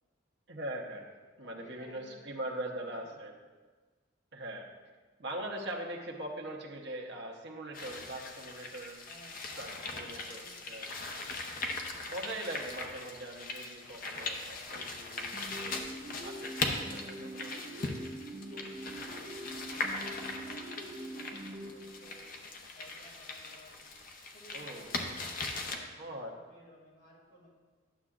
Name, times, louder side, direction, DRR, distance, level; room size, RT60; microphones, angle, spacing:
voice 1, 0.5-1.1 1.4-3.3 4.3-4.7 5.2-9.0 9.6-10.9 12.1-15.9 16.2-18.2 18.5-18.7 24.5-25.1 26.0-26.3, right 1 dB, 65° right, -1 dB, 0.9 m, -42 dB
voice 2, 1.4-3.3 9.0-12.1 18.4-18.7 19.7-22.4 22.7-23.8 24.3-27.5, equal, 70° left, -5 dB, 2.6 m, -58 dB
sound 1, 7.7-25.8, left 3 dB, 45° left, 0.7 m, -40 dB
sound 2, 15.3-22.5, right 1 dB, 20° right, 0.8 m, -44 dB
11.5 x 6.9 x 2.5 m, 1.4 s
head